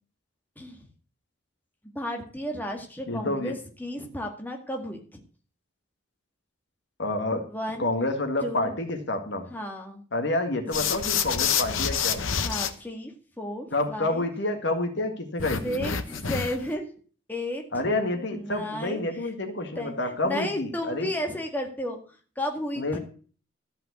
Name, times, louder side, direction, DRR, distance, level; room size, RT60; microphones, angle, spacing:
voice 1, 2.0-5.2 7.5-7.9 8.4-8.7 9.5-10.0 12.4-14.2 15.5-16.9 17.3-17.8 18.1-19.3 19.8-22.0 22.4-23.0, left 1 dB, 10° left, 2 dB, 1.9 m, -33 dB
voice 2, 3.1-3.5 7.0-7.4 7.8-9.5 10.1-12.2 13.7-15.8 17.7-21.1 22.8-23.0, left 2 dB, 60° left, 6 dB, 2.0 m, -28 dB
sound 1, 10.7-12.7 15.4-16.7, left 7 dB, 85° left, 1.2 m, -27 dB
13.5 x 5.8 x 8.2 m, 0.41 s
head